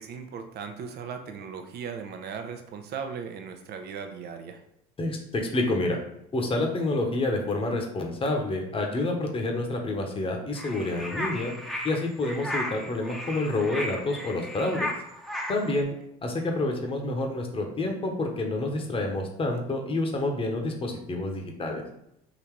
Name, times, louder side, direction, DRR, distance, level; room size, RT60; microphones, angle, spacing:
voice 1, 0.0-4.6, right 6 dB, 55° right, 6 dB, 0.8 m, -37 dB
voice 2, 5.0-6.0 6.3-11.5 11.8-14.9 15.5-15.9 16.2-21.8, left 2 dB, 25° left, 2 dB, 1.1 m, -28 dB
sound 1, 10.6-15.8, left 1 dB, ahead, 0.9 m, -35 dB
3.9 x 2.9 x 4.7 m, 0.78 s
hypercardioid pair, 80°, 20 cm